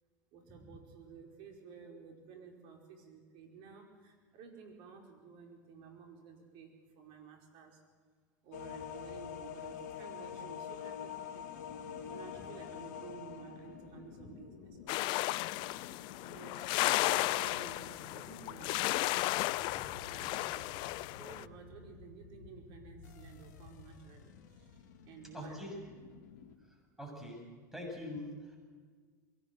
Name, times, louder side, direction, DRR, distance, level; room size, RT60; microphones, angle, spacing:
voice 1, 0.3-7.8 8.4-11.5 12.1-14.9 16.1-18.9 19.9-20.8 21.2-25.7, right 6 dB, 55° right, 2 dB, 4.9 m, -53 dB
sound 1, 8.5-26.6, left 8 dB, 75° left, 2.0 m, -48 dB
sound 2, 14.9-21.4, left 19 dB, 55° left, 0.5 m, -34 dB
voice 2, 19.5-20.0 25.3-25.7 27.0-27.4 27.7-28.6, left 1 dB, 5° right, 1 dB, 7.6 m, -44 dB
23.0 x 17.5 x 7.8 m, 1.6 s
hypercardioid pair, 95°, 10 cm